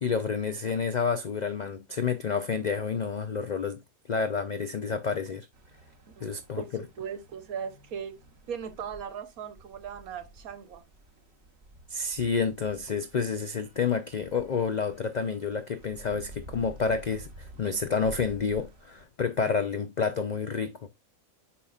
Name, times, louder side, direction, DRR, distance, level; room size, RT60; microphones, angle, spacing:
voice 1, 0.0-3.8 4.1-5.5 6.2-6.8 11.9-20.9, left 5 dB, 85° left, 0.3 m, -29 dB
sound 1, 5.5-19.0, right 1 dB, 50° right, 1.4 m, -51 dB
voice 2, 6.1-6.7 7.0-8.2 8.5-10.8, right 7 dB, 80° right, 1.4 m, -38 dB
8.3 x 5.6 x 2.3 m
omnidirectional pair, 1.5 m